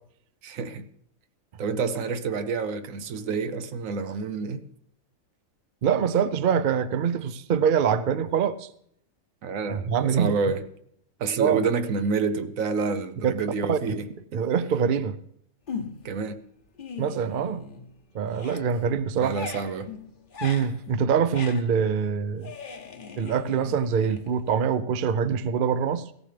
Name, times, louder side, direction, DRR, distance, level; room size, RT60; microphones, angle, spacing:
voice 1, 0.4-0.9 1.6-4.6 9.4-10.6 11.2-14.1 14.3-14.4 16.0-16.4 19.2-19.9, right 5 dB, 75° right, 1.2 m, -28 dB
voice 2, 5.8-8.7 9.9-10.3 11.4-11.6 13.2-13.3 13.7-13.8 14.3-15.2 17.0-17.7 18.1-19.3 20.4-22.5 23.2-26.1, right 7 dB, 55° right, 0.6 m, -24 dB
sound 1, 15.7-16.2 16.6-18.0 18.2-24.8, left 5 dB, 45° left, 1.0 m, -40 dB
17.0 x 14.0 x 3.3 m
omnidirectional pair, 1.4 m